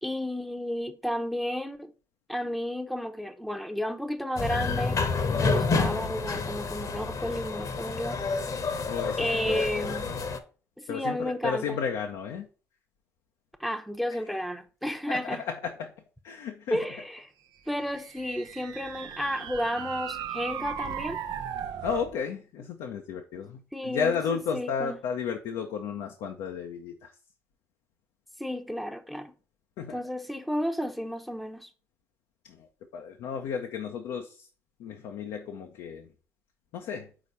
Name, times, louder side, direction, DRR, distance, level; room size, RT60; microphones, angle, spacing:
voice 1, 0.0-1.9 2.3-5.0 5.4-8.2 9.2-10.1 10.8-11.8 13.6-15.5 16.7-17.3 17.7-21.2 23.7-25.0 28.4-29.3 29.9-31.7, equal, ahead, 0.8 m, -32 dB
sound 1, 4.4-10.4, left 4 dB, 50° left, 1.1 m, -29 dB
voice 2, 8.9-10.0 10.9-12.5 15.1-15.9 16.2-16.8 21.8-27.1 29.8-30.0 32.5-32.7 32.9-34.5 34.8-36.1 36.7-37.1, left 7 dB, 70° left, 0.7 m, -33 dB
sound 2, 17.8-22.1, right 9 dB, 65° right, 0.6 m, -36 dB
5.0 x 4.1 x 5.5 m
hypercardioid pair, 50°, 8 cm